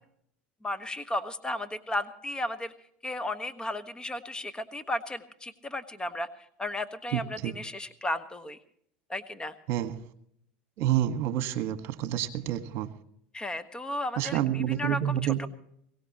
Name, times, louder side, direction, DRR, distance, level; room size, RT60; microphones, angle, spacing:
voice 1, 0.6-2.7 3.0-6.3 6.6-8.6 9.1-9.5 13.3-15.5, left 1 dB, 15° left, 14 dB, 1.4 m, -34 dB
voice 2, 7.1-7.5 9.7-10.0 10.8-12.9 14.2-15.4, right 12 dB, 55° right, 9 dB, 1.6 m, -28 dB
22.5 x 17.5 x 3.0 m, 0.68 s
hypercardioid pair, 90°, 5 cm